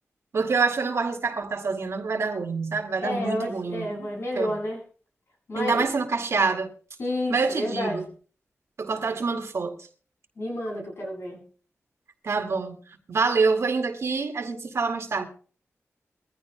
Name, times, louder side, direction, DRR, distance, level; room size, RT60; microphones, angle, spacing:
voice 1, 0.3-4.5 5.6-6.7 7.3-8.1 8.8-9.7 12.2-12.8 13.1-15.3, right 4 dB, 70° right, 2.1 m, -26 dB
voice 2, 3.0-4.8 5.5-5.9 7.0-8.0 10.4-11.4, left 1 dB, 65° left, 7.5 m, -30 dB
22.5 x 15.0 x 2.3 m
wide cardioid pair, 100°, 5 cm